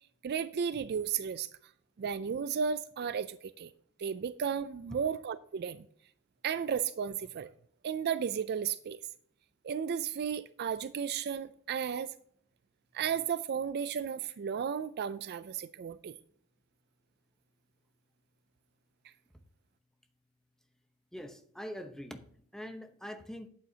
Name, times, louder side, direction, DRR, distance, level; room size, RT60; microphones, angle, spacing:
voice 1, 0.2-1.5 2.0-3.7 4.0-5.8 6.4-7.5 7.8-9.0 9.6-12.1 12.9-16.1, right 7 dB, 45° right, 0.3 m, -34 dB
voice 2, 21.1-23.5, equal, ahead, 0.9 m, -44 dB
12.0 x 8.6 x 2.8 m
head